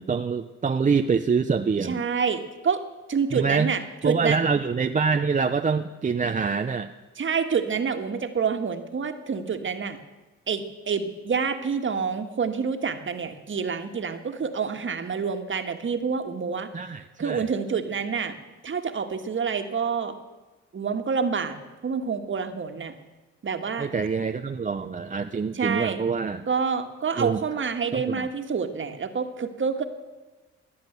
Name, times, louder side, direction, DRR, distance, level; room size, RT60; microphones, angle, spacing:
voice 1, 0.0-2.0 3.3-3.7 4.0-6.9 16.7-17.5 23.8-26.5 27.2-27.4 27.9-28.3, right 5 dB, 25° right, 6 dB, 0.6 m, -25 dB
voice 2, 1.8-2.8 3.1-4.4 7.2-10.0 10.5-16.7 17.2-18.3 18.6-20.1 20.7-22.9 23.4-23.9 25.5-26.0 26.5-29.8, right 6 dB, 40° right, 6 dB, 1.7 m, -27 dB
17.0 x 10.5 x 8.0 m, 1.2 s
cardioid pair, 90°, 30 cm